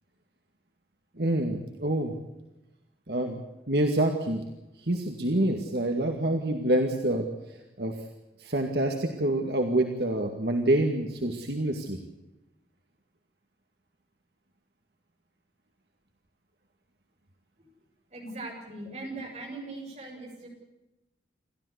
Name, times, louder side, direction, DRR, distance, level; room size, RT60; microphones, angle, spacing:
voice 1, 1.2-2.1 3.1-3.4 3.7-4.4 4.8-7.3 7.8-8.0 8.4-12.0, right 1 dB, 70° right, 3 dB, 2.2 m, -26 dB
voice 2, 18.1-20.5, right 2 dB, 40° right, 0 dB, 7.2 m, -40 dB
29.5 x 13.5 x 8.3 m, 0.98 s
head